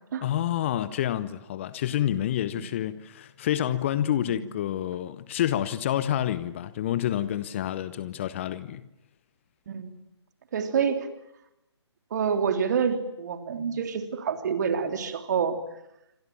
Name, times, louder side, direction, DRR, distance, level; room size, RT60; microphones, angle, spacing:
voice 1, 0.2-8.8, left 11 dB, 25° left, 0.9 m, -28 dB
voice 2, 10.5-11.1 12.1-15.6, right 6 dB, 40° right, 3.3 m, -27 dB
27.5 x 25.5 x 7.5 m
figure-of-eight pair, 140°, 15 cm